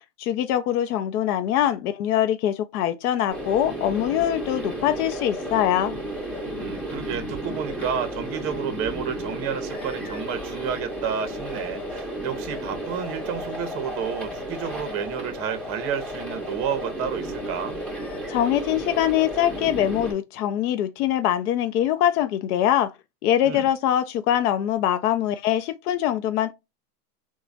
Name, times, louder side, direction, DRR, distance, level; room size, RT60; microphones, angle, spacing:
voice 1, 0.2-5.9 18.3-22.9 23.2-26.5, left 11 dB, 70° left, 0.5 m, -23 dB
sound 1, 3.3-20.1, right 1 dB, 5° left, 0.8 m, -33 dB
voice 2, 6.6-17.8 23.4-23.7, right 7 dB, 30° right, 0.7 m, -31 dB
3.1 x 2.2 x 2.4 m
hypercardioid pair, 130°, 46 cm